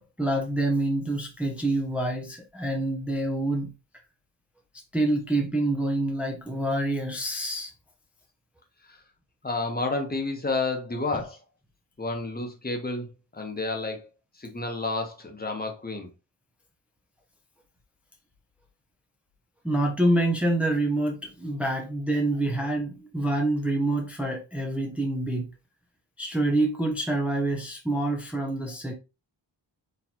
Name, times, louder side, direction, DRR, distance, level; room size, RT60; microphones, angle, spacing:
voice 1, 0.0-3.7 4.9-7.7 11.1-11.2 19.6-25.5 26.2-28.9, right 1 dB, 5° right, 0.7 m, -26 dB
voice 2, 9.4-11.4 12.0-13.1 13.3-14.1 14.4-16.1, left 3 dB, 20° left, 1.0 m, -30 dB
4.3 x 3.3 x 2.8 m
wide cardioid pair, 105°, 45 cm